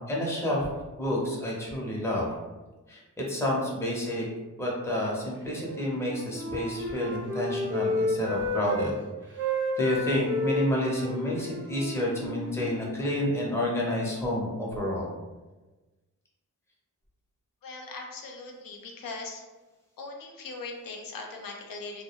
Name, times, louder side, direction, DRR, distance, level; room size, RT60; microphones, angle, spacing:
voice 1, 0.1-0.7 1.0-2.3 2.9-4.3 4.6-8.9 9.8-15.1, left 1 dB, 10° left, -4 dB, 0.6 m, -29 dB
Wind instrument woodwind instrument, 5.5-8.9 9.2-13.1, left 1 dB, 35° right, 0.4 m, -32 dB
voice 2, 17.6-19.4 20.0-22.0, left 3 dB, 80° left, 1 dB, 0.5 m, -40 dB
2.2 x 2.0 x 2.8 m, 1.2 s
wide cardioid pair, 90°, 33 cm